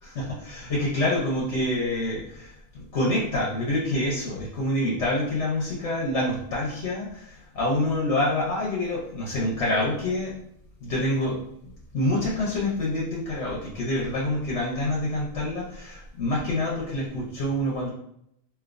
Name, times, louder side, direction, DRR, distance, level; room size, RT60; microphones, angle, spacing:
voice 1, 0.0-10.3 10.8-11.4 11.6-17.9, left 1 dB, 75° left, -5 dB, 1.2 m, -27 dB
3.2 x 2.7 x 2.5 m, 0.74 s
omnidirectional pair, 1.2 m